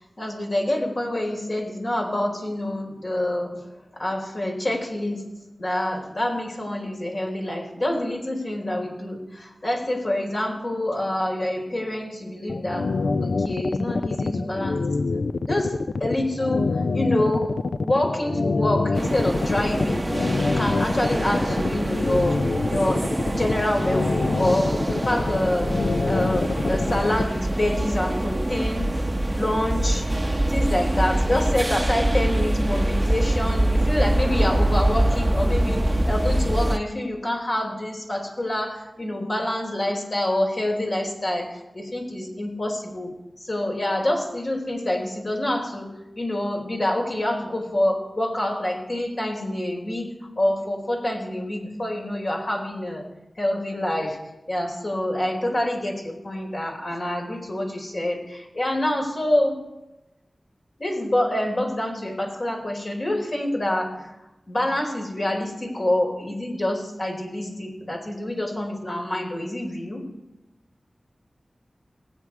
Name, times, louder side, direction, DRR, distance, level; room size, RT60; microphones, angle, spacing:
voice 1, 0.2-3.6 3.9-5.2 5.6-12.9 13.2-15.7 16.0-17.5 17.8-20.1 20.6-25.8 26.0-28.9 29.3-30.1 30.5-43.1 43.4-45.9 46.2-50.1 50.4-53.0 53.4-54.2 54.5-59.6 60.8-64.1 64.5-70.0, left 1 dB, 60° left, 0 dB, 4.2 m, -26 dB
sound 1, 12.5-27.2, left 3 dB, 90° left, 0.4 m, -25 dB
sound 2, 18.9-36.8, right 1 dB, 25° right, 0.6 m, -24 dB
19.5 x 9.1 x 4.7 m, 0.97 s
wide cardioid pair, 50°, 0 cm